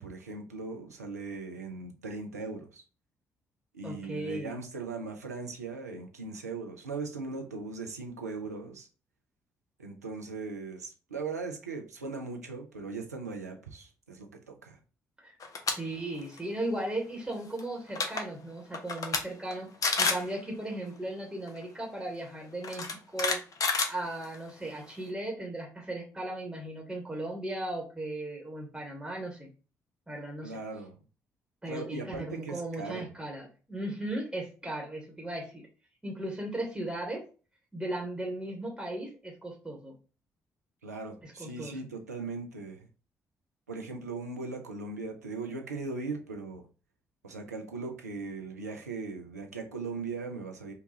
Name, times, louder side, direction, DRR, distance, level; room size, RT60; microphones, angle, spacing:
voice 1, 0.0-2.8 3.7-8.9 9.8-14.8 30.4-31.0 31.7-33.1 40.8-42.9 43.7-46.7 47.2-50.7, right 4 dB, 85° right, 0.4 m, -39 dB
voice 2, 3.8-4.5 15.2-15.3 15.8-19.7 20.0-23.4 23.9-29.5 30.1-30.6 31.6-35.6 36.0-37.2 37.7-39.9 41.2-41.9, right 1 dB, 10° right, 1.1 m, -37 dB
sound 1, 15.4-15.7 16.1-16.4 17.6-17.7 17.9-18.2 18.7-19.2 19.5-19.6 19.8-20.3 21.5-21.6 22.6-24.5, left 4 dB, 45° left, 0.6 m, -29 dB
3.7 x 2.3 x 2.8 m
figure-of-eight pair, 40°, 8 cm